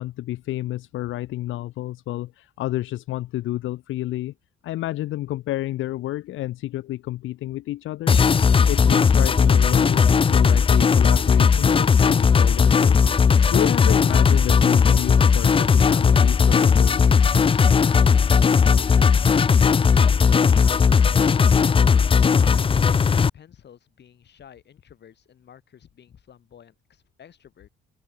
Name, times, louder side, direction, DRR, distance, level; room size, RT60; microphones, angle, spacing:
voice 1, 0.0-4.3 4.6-8.2 8.6-13.1 13.5-17.3, left 15 dB, 85° left, 1.7 m, -30 dB
sound 1, 8.1-23.3, left 6 dB, 25° left, 0.5 m, -17 dB
voice 2, 22.4-27.7, left 9 dB, 60° left, 7.1 m, -50 dB
open air
cardioid pair, 90°, 20 cm